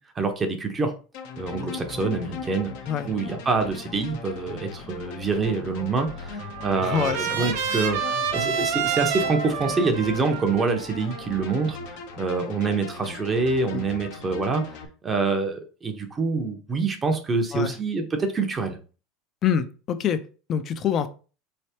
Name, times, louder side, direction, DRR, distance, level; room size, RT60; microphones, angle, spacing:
voice 1, 0.2-0.9 1.4-2.7 3.0-14.6 15.0-18.8, right 4 dB, 20° right, 5 dB, 0.7 m, -26 dB
sound 1, 1.1-14.9, left 5 dB, 70° left, 0.8 m, -39 dB
Trumpet, 6.0-12.1, right 7 dB, 75° right, 0.7 m, -29 dB
voice 2, 6.8-7.5 13.7-13.8 17.5-17.7 19.4-20.2 20.5-21.1, left 8 dB, 35° left, 11 dB, 0.5 m, -25 dB
4.2 x 3.3 x 2.8 m, 0.36 s
supercardioid pair, 140°, 0 cm